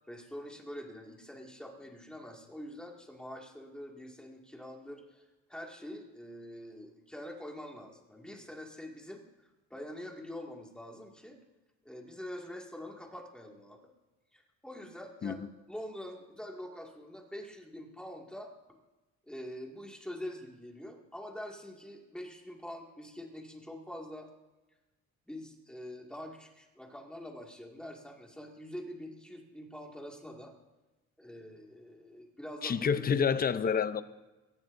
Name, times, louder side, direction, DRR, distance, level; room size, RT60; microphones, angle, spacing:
voice 1, 0.1-5.2 5.5-9.2 9.7-11.4 11.8-13.8 14.3-18.5 19.3-24.3 25.3-30.5 31.2-32.8 33.2-33.3, left 1 dB, 5° left, 2.2 m, -45 dB
voice 2, 32.6-34.0, left 6 dB, 30° left, 0.7 m, -28 dB
22.0 x 18.0 x 2.7 m
cardioid pair, 150°, 29 cm